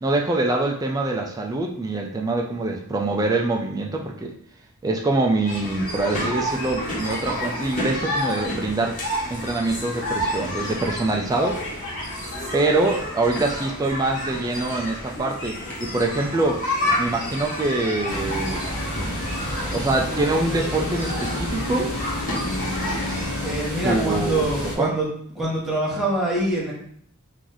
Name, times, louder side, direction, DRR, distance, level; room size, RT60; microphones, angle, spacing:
voice 1, 0.0-4.3 4.8-9.0 9.3-11.6 12.5-16.6 17.0-18.7 19.7-21.9 23.8-24.9, right 2 dB, 15° right, 1 dB, 0.3 m, -24 dB
sound 1, 5.4-23.5, left 1 dB, 40° left, 1.3 m, -30 dB
sound 2, 18.1-24.7, left 1 dB, 70° left, 1.2 m, -29 dB
voice 2, 23.4-25.1 25.4-26.7, right 2 dB, ahead, -6 dB, 1.0 m, -24 dB
3.0 x 2.6 x 3.8 m, 0.63 s
head